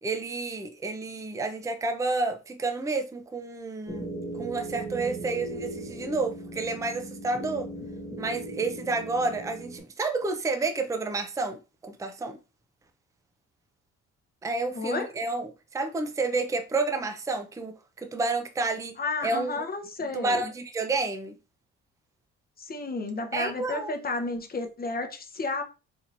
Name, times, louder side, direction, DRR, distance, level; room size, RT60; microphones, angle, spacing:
voice 1, 0.0-4.1 4.4-7.7 8.2-12.4 14.4-18.9 19.2-19.6 20.1-21.3 23.3-23.9, right 3 dB, 10° right, 0.5 m, -30 dB
sound 1, 3.9-9.8, right 1 dB, 5° left, 1.0 m, -38 dB
voice 2, 14.7-15.1 19.0-20.5 22.6-25.6, left 3 dB, 30° left, 0.8 m, -32 dB
4.4 x 2.9 x 2.5 m
cardioid pair, 90°, 30 cm